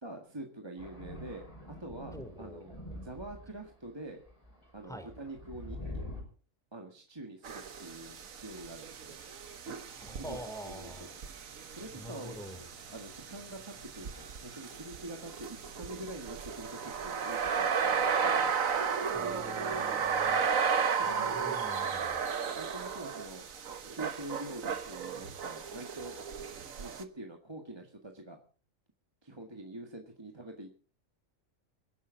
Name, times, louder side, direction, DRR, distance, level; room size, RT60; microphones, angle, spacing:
voice 1, 0.0-4.2 4.7-6.0 6.7-9.2 10.1-11.2 11.6-12.4 12.9-18.6 19.0-20.4 20.9-21.4 22.6-23.5 23.9-26.2 26.8-28.4 29.2-30.7, right 1 dB, 20° right, 2 dB, 1.8 m, -46 dB
Thunder, 0.8-3.7 4.3-6.2, left 1 dB, 25° left, 5.0 m, -45 dB
voice 2, 2.1-2.6 4.8-5.1 10.0-11.1 11.9-12.6 19.1-20.5 21.0-22.2, equal, ahead, 7 dB, 3.0 m, -46 dB
sound 1, 7.4-27.0, right 6 dB, 85° right, 1.6 m, -34 dB
sound 2, 11.7-18.5, left 2 dB, 75° left, 5.0 m, -60 dB
26.5 x 11.0 x 3.9 m, 0.38 s
omnidirectional pair, 1.4 m